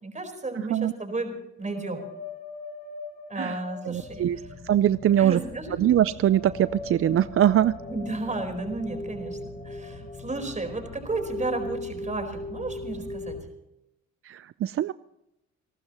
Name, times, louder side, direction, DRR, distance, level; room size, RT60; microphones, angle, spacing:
voice 1, 0.0-1.3 1.6-2.0 3.3-4.3 5.2-5.7 7.9-13.4, right 2 dB, 25° right, 6 dB, 4.3 m, -33 dB
voice 2, 0.5-0.9 3.4-3.6 3.8-5.4 5.7-7.7 14.2-14.9, right 11 dB, 45° right, 16 dB, 0.4 m, -23 dB
sound 1, 1.6-13.4, left 1 dB, 30° left, 5.9 m, -40 dB
sound 2, 3.9-13.4, left 5 dB, 60° left, 2.3 m, -45 dB
29.5 x 12.0 x 3.0 m, 0.86 s
cardioid pair, 90°, 30 cm